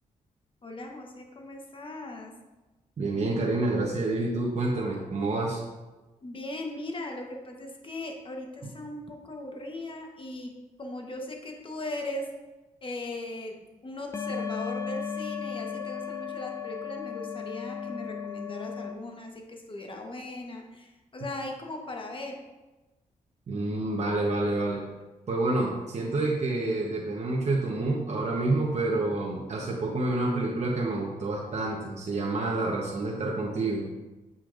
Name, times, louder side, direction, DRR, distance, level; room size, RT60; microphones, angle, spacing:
voice 1, 0.6-2.3 6.2-10.5 10.8-12.3 12.8-22.4, left 1 dB, 35° left, 2 dB, 1.1 m, -38 dB
voice 2, 3.0-5.6 23.5-24.8 25.3-33.8, right 2 dB, 50° right, -3 dB, 1.1 m, -28 dB
sound 1, 14.1-18.9, left 6 dB, 20° left, 0.5 m, -35 dB
7.8 x 5.5 x 2.6 m, 1.1 s
cardioid pair, 75°, 14 cm